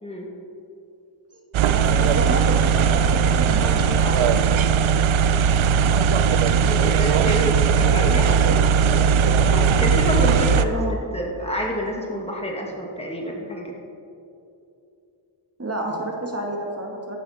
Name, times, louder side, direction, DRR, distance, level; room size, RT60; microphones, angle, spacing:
sound 1, 1.5-10.7, right 7 dB, 90° right, 0.6 m, -18 dB
voice 1, 1.7-5.0 8.3-8.6 10.7-11.0 15.6-17.2, right 2 dB, 30° right, 0 dB, 1.9 m, -30 dB
voice 2, 6.6-8.3 9.4-10.9 11.1-13.7, equal, 15° left, -1 dB, 2.0 m, -28 dB
15.0 x 11.5 x 4.3 m, 2.7 s
wide cardioid pair, 115°, 46 cm